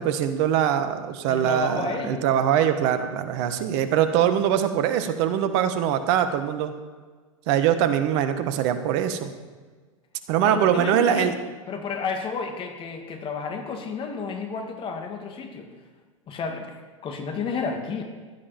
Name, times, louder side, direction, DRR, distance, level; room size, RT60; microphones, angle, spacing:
voice 1, 0.0-6.7 7.5-9.3 10.3-11.3, right 9 dB, 50° right, 9 dB, 1.4 m, -22 dB
voice 2, 1.3-2.3 10.4-11.3 11.7-15.7 16.3-16.7 17.0-18.0, left 5 dB, 30° left, 4 dB, 2.5 m, -31 dB
16.0 x 11.5 x 4.4 m, 1.4 s
hypercardioid pair, 100°, 17 cm